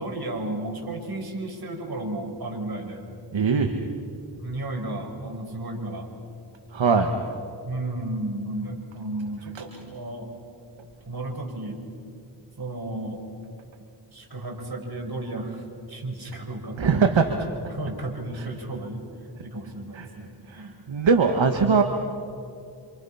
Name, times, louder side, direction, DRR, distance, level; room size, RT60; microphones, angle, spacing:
voice 1, 0.0-3.1 4.4-6.1 7.6-10.3 11.1-11.8 12.6-13.2 14.1-17.1 17.6-19.0 19.4-20.8, right 2 dB, 50° right, 2 dB, 5.3 m, -33 dB
voice 2, 3.3-3.7 6.7-7.1 16.8-17.2 18.4-18.5 19.9-20.1 20.9-21.8, right 5 dB, 65° right, 5 dB, 1.7 m, -20 dB
28.0 x 27.5 x 5.8 m, 2.5 s
cardioid pair, 55°, 48 cm